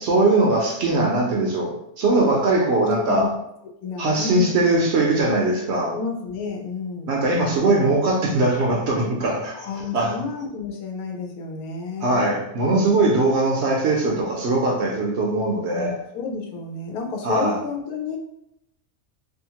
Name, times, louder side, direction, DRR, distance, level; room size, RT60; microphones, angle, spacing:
voice 1, 0.0-3.3 4.0-5.9 7.1-9.7 9.9-10.1 12.0-15.9 17.2-17.6, right 2 dB, 65° right, -1 dB, 0.7 m, -21 dB
voice 2, 3.8-4.6 5.9-7.1 9.5-12.2 15.7-18.2, left 5 dB, 90° left, 2 dB, 1.1 m, -31 dB
2.7 x 2.4 x 2.8 m, 0.80 s
omnidirectional pair, 1.5 m